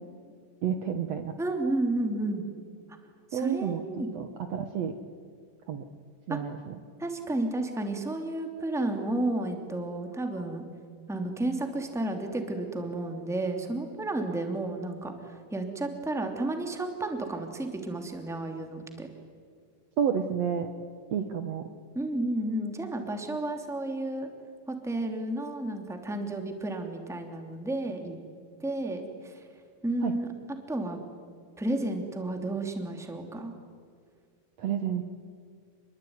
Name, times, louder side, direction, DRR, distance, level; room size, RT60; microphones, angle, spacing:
voice 1, 0.6-1.3 3.3-5.0 5.7-5.9 6.3-6.8 20.0-20.7 21.1-21.7 30.0-30.1 34.6-35.1, right 8 dB, 60° right, 6 dB, 2.1 m, -30 dB
voice 2, 1.4-2.4 3.3-4.1 6.3-6.4 7.0-10.6 11.1-19.1 21.9-24.3 24.7-28.2 28.6-29.4 29.8-30.3 30.7-31.0 31.6-33.5, right 2 dB, ahead, 4 dB, 2.3 m, -32 dB
28.5 x 22.0 x 9.6 m, 2.1 s
omnidirectional pair, 3.9 m